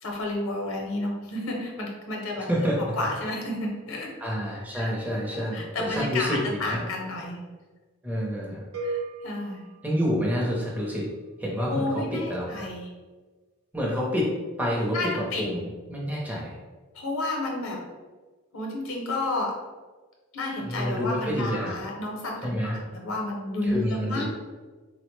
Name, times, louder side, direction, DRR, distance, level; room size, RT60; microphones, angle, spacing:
voice 1, 0.0-2.5 3.0-4.1 4.7-5.0 5.3-7.4 8.8-9.7 11.6-12.9 14.9-15.4 16.9-17.8 18.5-19.5 20.3-24.2, left 2 dB, 70° left, -1 dB, 0.6 m, -31 dB
voice 2, 2.4-2.9 4.2-6.8 8.0-8.6 9.8-11.1 11.4-12.0 12.3-12.7 13.7-14.3 14.6-15.1 15.4-15.6 15.9-16.6 20.6-21.7 22.4-22.8 23.7-24.2, equal, 10° right, -4 dB, 0.5 m, -28 dB
sound 1, 8.7-10.8, right 3 dB, 85° right, 0.6 m, -36 dB
3.8 x 2.0 x 3.0 m, 1.3 s
head